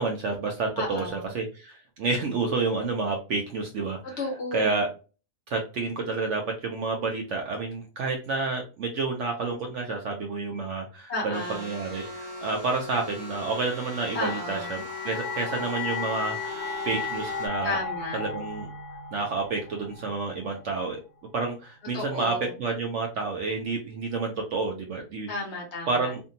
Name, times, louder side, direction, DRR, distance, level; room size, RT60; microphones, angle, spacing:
voice 1, 0.0-4.0 4.5-4.9 5.5-17.8 18.1-18.7 19.1-21.0 21.3-25.3 25.9-26.2, right 3 dB, 65° right, 1 dB, 0.8 m, -29 dB
voice 2, 0.8-1.3 4.2-4.8 11.1-11.7 14.1-14.9 17.6-18.2 21.9-22.6 25.3-26.1, left 2 dB, 55° left, 0 dB, 0.9 m, -33 dB
sound 1, 11.3-17.5, left 1 dB, 30° right, 1.0 m, -39 dB
sound 2, 13.6-20.7, left 4 dB, 70° left, 0.4 m, -36 dB
2.6 x 2.6 x 2.6 m, 0.33 s
omnidirectional pair, 1.6 m